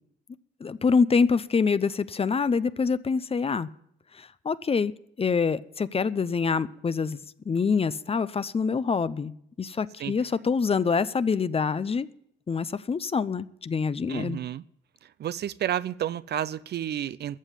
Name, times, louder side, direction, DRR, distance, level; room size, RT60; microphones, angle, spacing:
voice 1, 0.6-3.7 4.2-4.9 5.2-9.3 9.6-12.1 12.5-14.4, left 5 dB, 30° left, 0.6 m, -25 dB
voice 2, 14.1-14.6 15.0-17.4, right 10 dB, 55° right, 0.5 m, -31 dB
14.0 x 7.3 x 9.9 m
cardioid pair, 90°, 20 cm